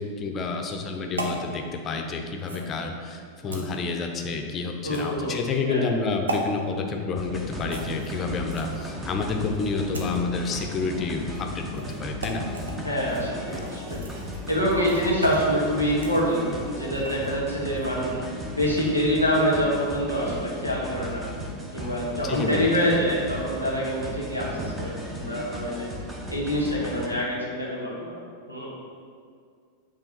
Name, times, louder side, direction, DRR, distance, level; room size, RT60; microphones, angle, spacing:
voice 1, 0.0-12.4 22.2-22.7, left 4 dB, 25° left, 3 dB, 0.7 m, -29 dB
sound 1, 1.2-1.4 2.4-2.7 3.5-3.7 4.8-5.2 6.3-6.4 7.7-8.8 9.5-10.2 11.2-11.4 11.7-11.9 12.2-12.7 13.1-17.3 17.7-17.9, right 1 dB, 70° right, 0.8 m, -36 dB
voice 2, 4.8-5.4 5.7-5.9 12.8-14.0 14.5-18.2 18.5-21.2 21.7-25.9 26.3-28.1 28.5-28.7, equal, 90° right, -5 dB, 1.6 m, -26 dB
sound 2, 7.2-27.1, equal, 15° right, 0.9 m, -36 dB
8.1 x 3.5 x 4.1 m, 2.2 s
figure-of-eight pair, 90°, 0 cm